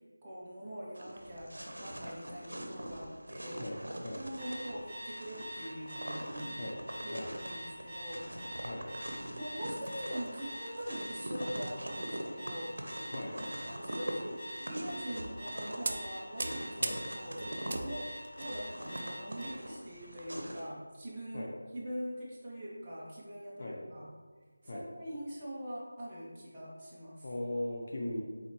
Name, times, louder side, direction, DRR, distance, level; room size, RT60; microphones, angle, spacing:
voice 1, 0.2-3.7 4.1-6.6 7.0-8.3 9.4-12.8 13.7-17.5 17.8-24.1 24.6-27.3, equal, 15° right, -9 dB, 0.7 m, -43 dB
sound 1, 0.9-20.7, right 1 dB, 85° right, 0.7 m, -43 dB
voice 2, 3.6-4.2 6.6-6.8 7.1-7.3 8.6-8.9 13.1-13.4 16.8-17.0 21.3-21.5 23.6-23.8 24.6-24.8 27.2-28.2, left 1 dB, 45° left, -1 dB, 0.6 m, -38 dB
Alarm, 4.4-19.5, equal, 10° left, 1.0 m, -44 dB
sound 2, 9.7-10.4 10.9-11.0 11.4-11.7 12.7-13.0 13.6-13.8 14.6-14.7 15.2-15.4 15.9-19.5 19.8-20.0 20.6-20.7, right 2 dB, 45° right, 0.4 m, -40 dB
4.0 x 4.0 x 3.1 m, 1.5 s
figure-of-eight pair, 175°, 0 cm